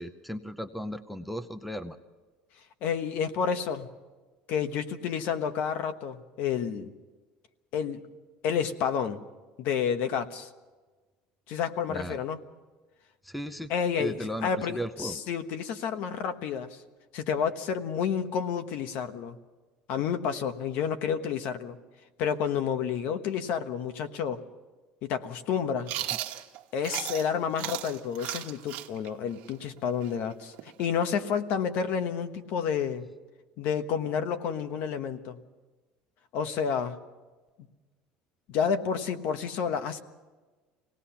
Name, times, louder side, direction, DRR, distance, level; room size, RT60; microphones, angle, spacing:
voice 1, 0.0-2.0 11.9-12.2 13.2-13.7 14.0-15.2 26.0-26.2, equal, ahead, 11 dB, 0.6 m, -36 dB
voice 2, 2.8-3.9 4.5-6.9 7.7-8.1 8.4-9.2 9.6-10.5 11.5-12.4 13.7-16.8 17.1-19.4 19.9-21.8 22.2-24.4 25.0-26.0 26.7-33.0 33.6-35.4 36.3-37.0 38.5-40.0, left 7 dB, 60° left, 9 dB, 1.2 m, -30 dB
Chewing mastication, 25.9-27.3 27.6-31.2, right 15 dB, 65° right, 1.4 m, -36 dB
24.5 x 18.0 x 5.8 m, 1.3 s
cardioid pair, 155°, 3 cm